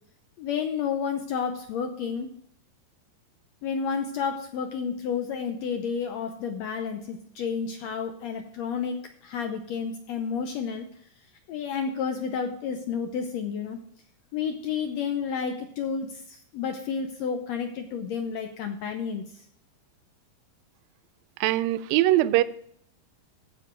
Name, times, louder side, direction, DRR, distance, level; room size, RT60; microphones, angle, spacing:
voice 1, 0.4-2.3 3.6-9.0 9.2-10.9 11.5-13.8 14.3-19.2, left 6 dB, 90° left, 1.5 m, -31 dB
voice 2, 21.4-22.4, right 15 dB, 85° right, 2.3 m, -21 dB
15.5 x 5.3 x 4.5 m
omnidirectional pair, 4.0 m